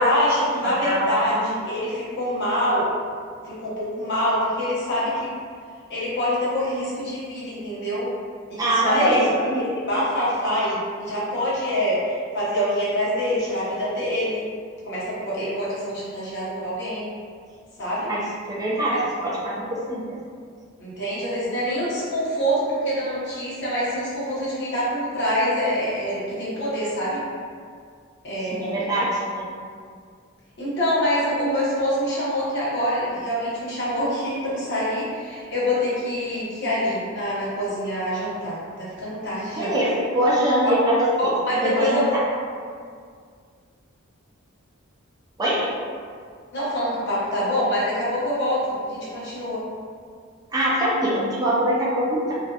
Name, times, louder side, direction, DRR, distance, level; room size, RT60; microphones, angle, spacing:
voice 1, 0.0-2.9 3.4-5.3 5.9-8.1 8.5-9.3 9.5-14.4 14.8-17.1 17.8-18.1 18.9-19.0 20.8-27.2 28.2-28.8 30.6-39.7 40.6-40.7 41.2-42.0 46.5-49.6, equal, 55° left, -8 dB, 0.8 m, -25 dB
voice 2, 0.6-1.6 8.6-9.2 9.5-9.6 18.1-20.2 28.5-29.5 39.6-42.2 45.4-45.7 50.5-52.4, right 1 dB, 20° right, -6 dB, 0.4 m, -23 dB
2.5 x 2.2 x 2.3 m, 2.1 s
head